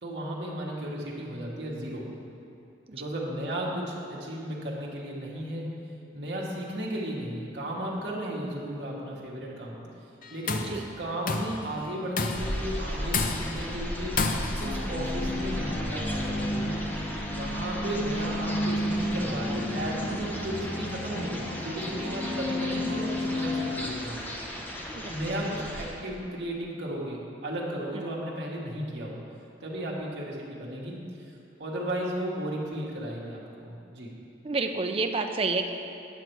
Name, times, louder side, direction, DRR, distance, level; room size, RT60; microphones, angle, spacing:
voice 1, 0.0-2.1 2.9-5.7 6.1-9.8 10.3-14.2 14.6-16.8 17.3-24.2 25.1-29.2 29.6-31.3 31.6-34.1, right 1 dB, 65° right, -4 dB, 1.4 m, -34 dB
Tools, 10.2-10.8 11.3-11.6 12.2-12.6 13.1-13.7 14.2-14.7, left 4 dB, 45° left, 0.5 m, -29 dB
sound 1, 12.3-25.9, equal, 10° left, 0.7 m, -36 dB
sound 2, 14.6-23.8, left 1 dB, 25° left, 1.1 m, -32 dB
voice 2, 34.4-35.7, right 3 dB, 30° right, 5 dB, 0.4 m, -29 dB
9.2 x 6.6 x 4.6 m, 2.7 s
head